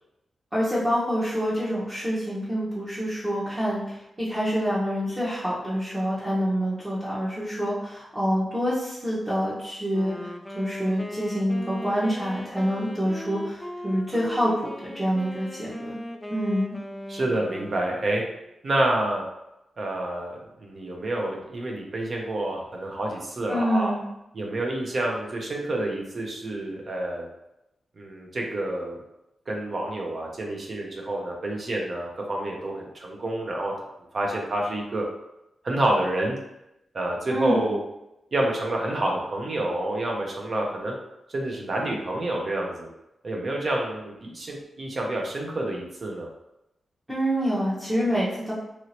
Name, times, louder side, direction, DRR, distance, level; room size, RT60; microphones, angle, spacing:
voice 1, 0.5-15.9 16.3-16.8 23.5-24.0 37.3-37.6 47.1-48.5, equal, 15° right, -9 dB, 0.9 m, -27 dB
Wind instrument woodwind instrument, 9.9-18.5, left 1 dB, 10° left, 0.3 m, -39 dB
voice 2, 17.1-18.2 18.6-19.2 19.8-23.9 24.3-27.3 28.0-29.0 29.5-33.7 34.1-35.0 35.6-36.4 36.9-37.8 38.3-41.0 41.3-42.9 43.2-46.3, right 1 dB, 50° right, 0 dB, 0.6 m, -28 dB
3.0 x 2.7 x 2.9 m, 0.88 s
cardioid pair, 90°, 0 cm